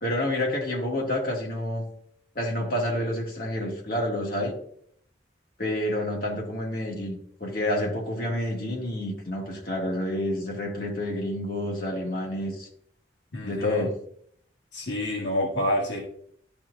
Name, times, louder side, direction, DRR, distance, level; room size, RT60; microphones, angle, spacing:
voice 1, 0.0-1.8 2.3-4.5 5.6-12.7 13.4-13.9, left 1 dB, 50° left, 1.7 m, -29 dB
voice 2, 13.3-13.9 14.7-16.0, left 1 dB, 75° left, 1.4 m, -28 dB
12.0 x 4.4 x 2.4 m
head